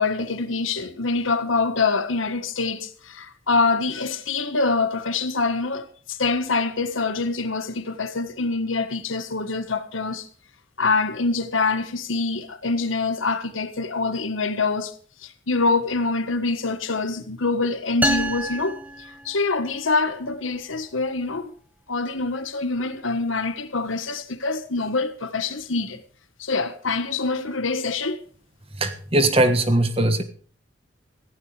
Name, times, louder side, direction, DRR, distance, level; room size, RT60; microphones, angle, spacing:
voice 1, 0.0-10.3 10.8-14.9 15.2-18.8 19.2-21.5 21.9-26.0 26.4-28.2, left 3 dB, 85° left, 1.5 m, -25 dB
sound 1, 18.0-19.8, right 1 dB, 10° right, 1.0 m, -27 dB
voice 2, 28.7-30.2, right 1 dB, 30° right, 1.4 m, -20 dB
17.5 x 15.0 x 3.4 m
head